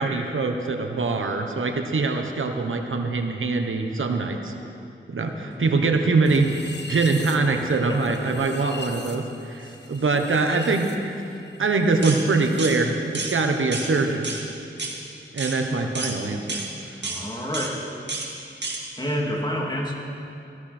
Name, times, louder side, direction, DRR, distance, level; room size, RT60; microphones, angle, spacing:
voice 1, 0.0-4.5 5.1-6.6 6.9-11.2 11.6-14.3 15.3-16.6 16.9-17.0, right 3 dB, 85° right, 4 dB, 1.2 m, -23 dB
sound 1, 6.2-12.8 13.0-14.2, left 2 dB, 60° left, 1.5 m, -41 dB
voice 2, 7.5-8.3 9.6-9.8 17.0-17.8 19.0-19.9, equal, 20° left, -2 dB, 2.9 m, -29 dB
sound 2, 12.0-12.2 12.6-12.8 13.1-13.4 13.7-13.9 14.2-14.4 14.8-15.0 15.4-15.6 16.0-16.2 16.5-16.7 17.0-17.2 17.5-17.7 18.1-18.3 18.6-18.8, right 3 dB, 60° right, 2.1 m, -30 dB
18.5 x 15.0 x 4.5 m, 2.7 s
wide cardioid pair, 60°, 20 cm